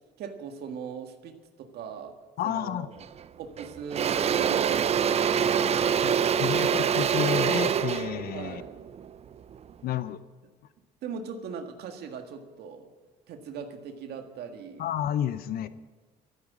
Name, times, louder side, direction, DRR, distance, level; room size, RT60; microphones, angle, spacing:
voice 1, 0.2-2.2 2.4-2.9 3.4-5.7 8.3-8.8 11.0-12.9 13.3-14.9, right 6 dB, 75° right, 6 dB, 1.7 m, -39 dB
voice 2, 2.4-2.9 6.0-8.6 9.8-10.2 14.8-15.7, left 10 dB, 60° left, 14 dB, 0.7 m, -31 dB
Engine / Drill, 3.0-3.2 3.6-9.7, right 8 dB, 40° right, 0.5 m, -25 dB
13.5 x 9.3 x 8.3 m, 1.3 s
cardioid pair, 110°, 17 cm